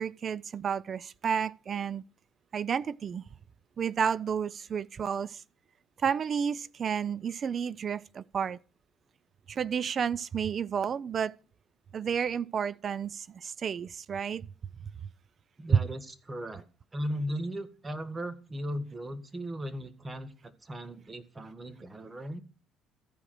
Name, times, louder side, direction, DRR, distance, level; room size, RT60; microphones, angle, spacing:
voice 1, 0.0-2.0 2.5-3.2 3.8-5.4 6.0-8.6 9.5-11.4 11.9-14.4 15.7-15.8, right 7 dB, 45° right, 0.4 m, -31 dB
voice 2, 15.6-16.6 16.9-22.4, equal, 20° right, 1.4 m, -37 dB
14.5 x 4.9 x 4.4 m
supercardioid pair, 85°, 0 cm